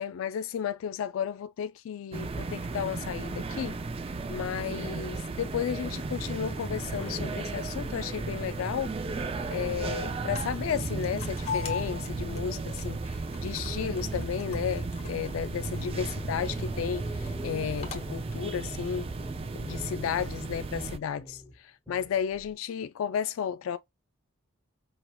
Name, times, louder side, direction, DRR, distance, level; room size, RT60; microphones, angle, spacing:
voice 1, 0.0-3.8 4.3-9.0 9.5-19.1 19.6-23.8, left 8 dB, 75° left, 0.3 m, -33 dB
sound 1, 2.1-21.0, right 3 dB, 25° right, 0.3 m, -35 dB
sound 2, 4.3-18.0, left 3 dB, 30° left, 1.1 m, -42 dB
sound 3, 17.2-22.5, left 1 dB, 5° left, 1.0 m, -49 dB
5.6 x 2.7 x 2.2 m
head